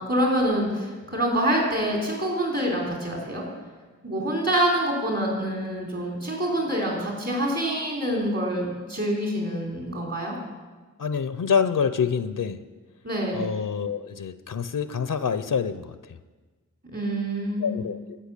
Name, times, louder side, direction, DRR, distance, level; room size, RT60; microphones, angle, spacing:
voice 1, 0.0-3.4 4.0-10.4 13.0-13.5 16.9-17.7, right 1 dB, 50° right, -1 dB, 3.8 m, -26 dB
voice 2, 11.0-12.6 13.3-16.0 17.6-18.2, left 6 dB, 85° left, 12 dB, 0.6 m, -26 dB
14.5 x 5.6 x 8.3 m, 1.3 s
wide cardioid pair, 45°, 31 cm